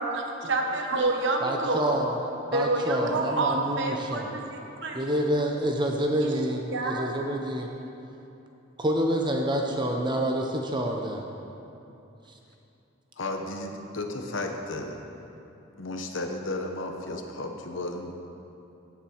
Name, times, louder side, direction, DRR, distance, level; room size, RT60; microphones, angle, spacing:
voice 1, 0.0-1.8 2.5-5.0 6.2-6.3 6.7-7.1, right 2 dB, 65° right, 2 dB, 1.3 m, -28 dB
voice 2, 1.4-2.2 2.5-4.3 4.9-7.7 8.8-11.2, right 1 dB, 25° right, 1 dB, 0.8 m, -27 dB
voice 3, 13.2-15.0 15.8-18.1, left 2 dB, 70° left, 3 dB, 1.2 m, -33 dB
17.0 x 7.4 x 4.6 m, 2.8 s
head